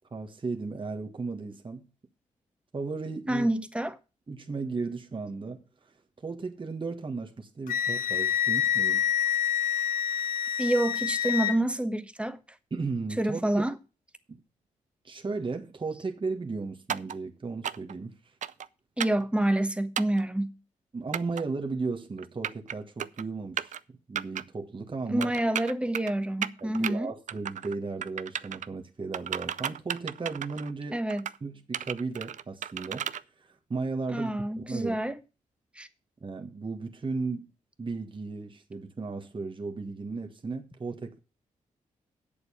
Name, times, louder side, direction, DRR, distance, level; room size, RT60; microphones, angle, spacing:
voice 1, 0.1-1.9 2.7-3.5 4.3-5.6 6.2-9.0 12.7-13.6 14.3-14.4 15.0-18.1 20.9-23.8 24.1-25.3 26.6-31.0 31.4-33.1 33.4-34.3 34.7-35.0 36.2-37.5 37.8-41.2, right 4 dB, 35° right, 1.6 m, -35 dB
voice 2, 3.3-4.0 10.6-12.4 13.2-13.7 19.0-20.5 25.1-27.1 30.9-31.3 34.1-35.1 35.8-35.9, right 1 dB, 10° right, 1.3 m, -28 dB
Wind instrument woodwind instrument, 7.7-11.6, left 9 dB, 80° left, 0.7 m, -27 dB
sound 1, 16.9-17.2 17.6-17.9 18.4-18.7 19.0-19.2 20.0-20.2 21.1-21.4 22.2-22.7 23.0-23.2 23.6-23.8 24.2-24.4 25.2-26.1 26.4-26.9 27.3-27.8 28.0-28.7 29.1-30.7 31.1-31.4 31.7-33.2, right 9 dB, 60° right, 0.5 m, -33 dB
8.1 x 7.0 x 7.0 m
supercardioid pair, 50°, 14 cm